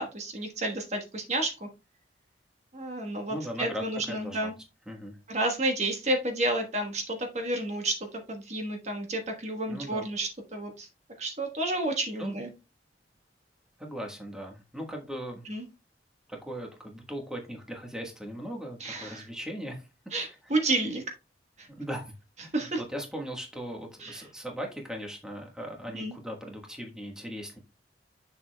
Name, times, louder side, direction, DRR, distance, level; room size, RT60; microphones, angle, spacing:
voice 1, 0.0-1.7 2.7-4.5 5.3-10.9 11.2-12.5 15.5-15.6 18.8-19.3 20.1-21.0 21.6-21.7 22.5-22.8 24.0-24.2 25.9-26.1, right 1 dB, 40° right, 4 dB, 1.2 m, -31 dB
voice 2, 3.3-4.5 4.9-5.2 9.7-10.1 12.2-12.4 13.8-15.4 16.3-19.9 20.4-20.5 21.7-22.1 22.4-27.6, equal, 5° right, 1 dB, 1.3 m, -38 dB
7.0 x 6.8 x 2.2 m, 0.27 s
head